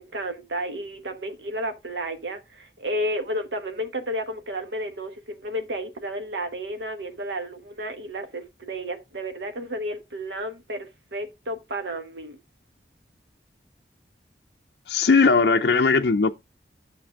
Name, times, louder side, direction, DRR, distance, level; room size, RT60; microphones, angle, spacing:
voice 1, 0.0-12.4, equal, 80° right, 1.1 m, -32 dB
voice 2, 14.9-16.3, left 4 dB, 60° left, 0.5 m, -18 dB
10.5 x 6.5 x 3.6 m
head